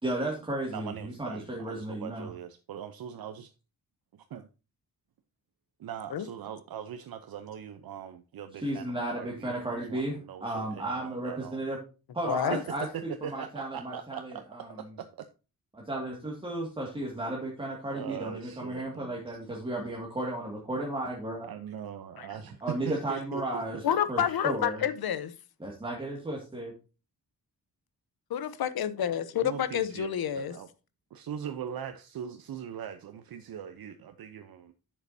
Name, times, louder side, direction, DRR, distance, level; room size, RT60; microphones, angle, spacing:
voice 1, 0.0-2.3 8.6-11.8 12.1-12.9 13.2-14.9 15.7-21.5 22.6-24.8 25.6-26.7, right 1 dB, 15° right, 2.1 m, -34 dB
voice 2, 0.7-3.5 4.1-4.5 5.8-11.6 12.5-12.6 12.9-15.3 17.9-19.2 21.4-23.6 23.9-24.0 29.4-30.1 30.4-30.7 31.1-34.7, right 9 dB, 75° right, 0.8 m, -41 dB
voice 3, 12.3-12.6 22.2-22.3 23.8-25.3 28.3-30.5, left 9 dB, 80° left, 0.9 m, -29 dB
10.5 x 7.7 x 2.7 m
wide cardioid pair, 135°, 36 cm